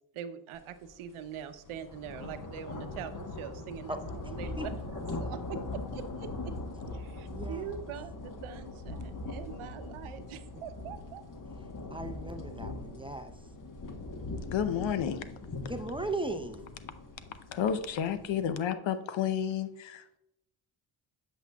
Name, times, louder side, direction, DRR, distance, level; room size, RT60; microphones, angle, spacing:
voice 1, 0.1-5.6 5.9-6.5 6.9-11.2, right 9 dB, 85° right, 10 dB, 0.7 m, -43 dB
sound 1, 0.7-0.9 1.3-18.5, left 2 dB, 40° left, 1.1 m, -41 dB
voice 2, 7.3-7.7 11.9-13.3 15.7-16.7, right 2 dB, 10° right, 6 dB, 0.5 m, -37 dB
voice 3, 14.5-15.3 17.5-20.2, left 8 dB, 70° left, 11 dB, 0.8 m, -31 dB
8.2 x 6.2 x 2.3 m, 0.83 s
cardioid pair, 70°, 48 cm